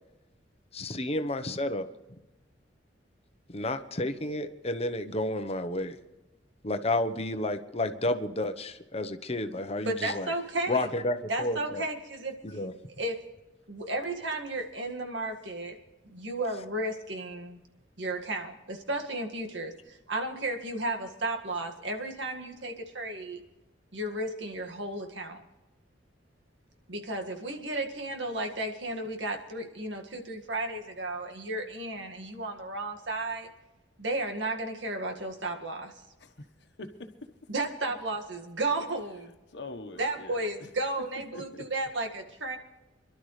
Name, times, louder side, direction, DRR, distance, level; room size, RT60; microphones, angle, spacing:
voice 1, 0.7-1.9 3.5-6.0 6.6-10.3 10.7-11.8 12.4-12.7, left 1 dB, 35° left, 1.0 m, -31 dB
voice 2, 9.8-10.9 11.3-12.3 13.0-13.2 13.7-15.8 16.1-17.6 18.0-23.4 23.9-25.4 26.9-33.5 34.0-35.9 37.5-39.3 40.0-42.6, right 2 dB, 85° right, 1.9 m, -33 dB
voice 3, 36.2-36.5 36.8-37.3 39.5-40.5 41.3-41.7, left 2 dB, 70° left, 1.3 m, -43 dB
26.0 x 12.0 x 3.3 m
head